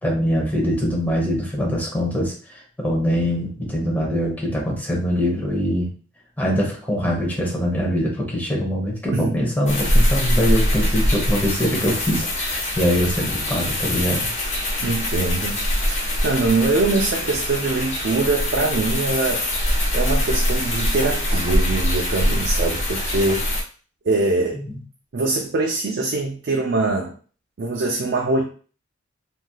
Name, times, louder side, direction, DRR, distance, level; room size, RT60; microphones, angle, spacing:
voice 1, 0.0-5.9 6.4-14.3 24.5-24.7, equal, 10° left, -3 dB, 1.0 m, -23 dB
sound 1, 9.7-23.6, left 1 dB, 35° left, 0.8 m, -23 dB
voice 2, 14.8-19.4 19.9-23.4 24.0-24.6 25.1-27.1 27.6-28.4, right 3 dB, 55° right, 0 dB, 0.4 m, -23 dB
3.2 x 2.7 x 2.2 m, 0.39 s
head